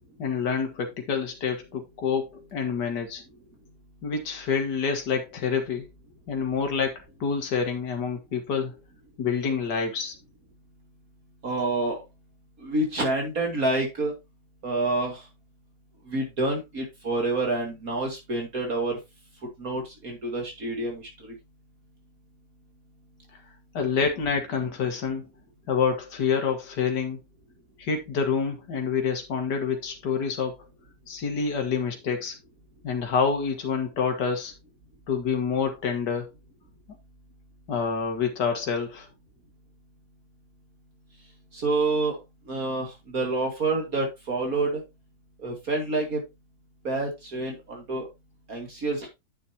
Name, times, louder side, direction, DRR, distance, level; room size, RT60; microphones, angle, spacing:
voice 1, 0.2-3.2 4.0-5.9 6.3-8.8 9.2-10.1 23.7-25.3 25.7-27.2 27.8-30.6 31.1-32.3 32.8-34.5 35.1-36.3 37.7-39.1, left 6 dB, 75° left, 2.2 m, -27 dB
voice 2, 11.4-12.0 12.6-14.1 14.6-15.2 16.1-19.0 19.6-21.3 41.5-42.2 42.5-44.8 45.4-46.2 46.8-48.1 48.5-49.1, right 2 dB, 55° right, 2.7 m, -28 dB
9.5 x 7.1 x 2.8 m
omnidirectional pair, 1.8 m